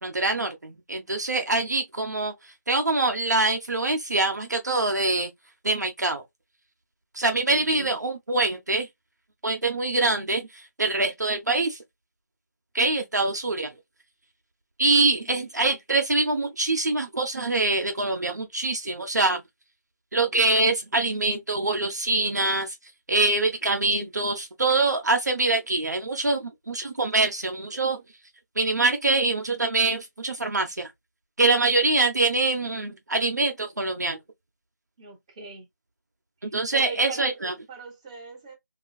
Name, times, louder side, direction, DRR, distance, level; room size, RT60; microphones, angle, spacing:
voice 1, 0.0-5.3 5.6-6.2 7.1-8.9 9.4-11.8 12.7-13.7 14.8-19.4 20.1-28.0 28.6-30.9 31.4-34.2 36.4-37.5, right 2 dB, 65° right, 0.7 m, -24 dB
voice 2, 7.5-7.9 15.2-15.7 35.0-35.6 36.4-38.5, right 4 dB, 20° right, 1.3 m, -41 dB
3.6 x 2.4 x 2.3 m
figure-of-eight pair, 170°, 10 cm